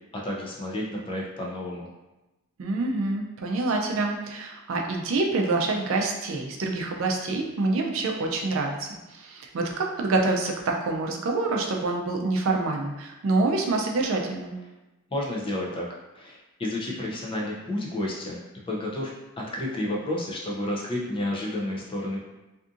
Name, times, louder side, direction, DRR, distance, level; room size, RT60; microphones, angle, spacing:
voice 1, 0.2-1.9 15.1-15.9 16.1-18.4 18.7-22.2, left 1 dB, 25° left, -3 dB, 0.4 m, -31 dB
voice 2, 2.6-14.5, right 3 dB, 60° right, 1 dB, 0.4 m, -26 dB
2.6 x 2.5 x 2.5 m, 1.0 s
head